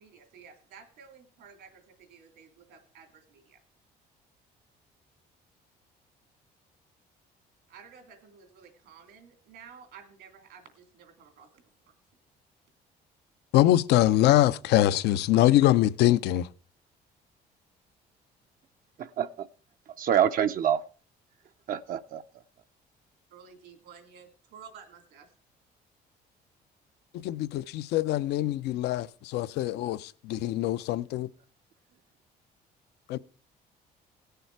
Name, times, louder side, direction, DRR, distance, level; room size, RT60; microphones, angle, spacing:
voice 1, 0.0-3.6 7.7-11.9 23.3-25.3, right 6 dB, 80° right, 2.8 m, -52 dB
voice 2, 13.5-16.5 27.1-31.3 33.1-33.2, left 14 dB, 80° left, 0.6 m, -23 dB
voice 3, 19.0-19.5 20.0-20.8 21.7-22.2, right 9 dB, 55° right, 0.6 m, -26 dB
17.5 x 6.8 x 4.6 m
cardioid pair, 110°, 17 cm